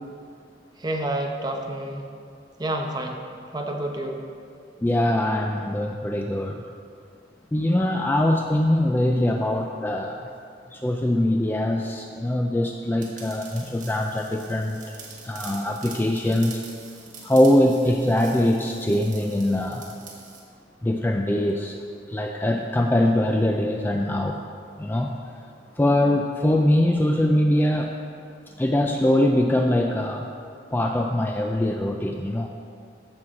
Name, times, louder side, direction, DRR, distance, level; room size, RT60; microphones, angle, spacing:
voice 1, 0.8-2.1 2.6-3.2 3.5-4.2, right 1 dB, 20° right, 2 dB, 0.8 m, -29 dB
voice 2, 4.8-6.6 7.5-10.2 10.7-14.8 15.2-16.6 17.2-19.9 20.8-21.8 22.1-24.4 24.8-25.1 25.8-27.9 28.6-30.3 30.7-32.5, left 1 dB, 10° left, 3 dB, 0.3 m, -22 dB
sound 1, 13.0-20.4, right 5 dB, 45° right, 1.5 m, -44 dB
15.0 x 6.2 x 3.7 m, 2.3 s
head